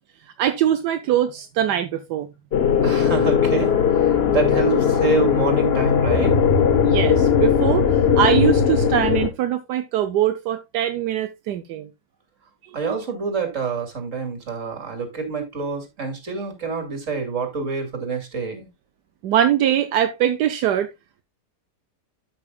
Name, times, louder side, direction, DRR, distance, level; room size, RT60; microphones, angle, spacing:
voice 1, 0.4-2.3 6.8-7.9 8.1-11.9 19.2-20.9, right 11 dB, 80° right, 1.3 m, -22 dB
sound 1, 2.5-9.3, left 7 dB, 45° left, 1.0 m, -18 dB
voice 2, 2.8-6.4 12.7-18.7, right 5 dB, 50° right, 2.7 m, -27 dB
13.0 x 6.1 x 2.3 m
omnidirectional pair, 1.7 m